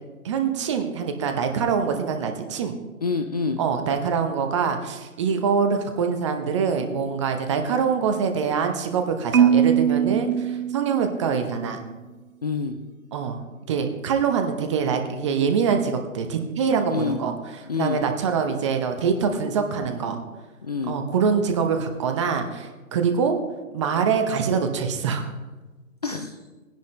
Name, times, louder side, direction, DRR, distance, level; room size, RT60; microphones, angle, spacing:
voice 1, 0.2-2.7 3.6-11.8 13.1-13.4 13.7-17.3 17.7-20.2 20.9-23.4 23.7-25.3, right 6 dB, 20° right, 6 dB, 0.8 m, -24 dB
voice 2, 3.0-3.6 12.4-12.8 16.9-17.2 17.7-18.0 20.6-21.0 26.0-26.4, left 4 dB, 30° left, 6 dB, 0.5 m, -27 dB
Marimba xylophone, 9.3-11.5, right 8 dB, 70° right, 0.8 m, -21 dB
19.5 x 10.5 x 3.2 m, 1.2 s
figure-of-eight pair, 140°, 42 cm